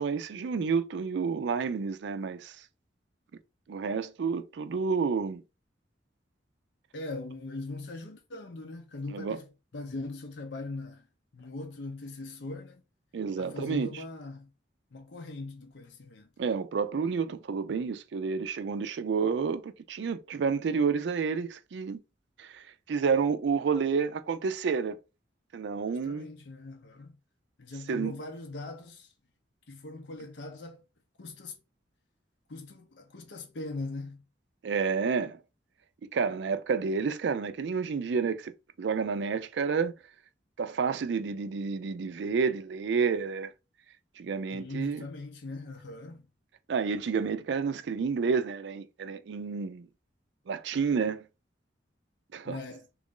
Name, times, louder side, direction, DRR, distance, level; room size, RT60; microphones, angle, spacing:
voice 1, 0.0-2.6 3.7-5.4 9.1-9.4 13.1-13.9 16.4-22.0 22.4-25.0 25.5-26.3 27.9-28.1 34.6-35.4 36.1-38.5 38.8-39.9 40.6-43.5 44.2-45.0 46.7-49.9 50.5-51.2 52.3-52.6, right 5 dB, 70° right, 0.4 m, -30 dB
voice 2, 6.9-11.0 11.3-12.8 13.4-14.5 14.9-16.3 25.9-27.2 27.6-29.1 29.7-30.8 31.2-31.6 32.5-34.2 44.5-46.3 52.4-52.9, left 2 dB, 70° left, 0.6 m, -40 dB
3.0 x 2.5 x 3.7 m
head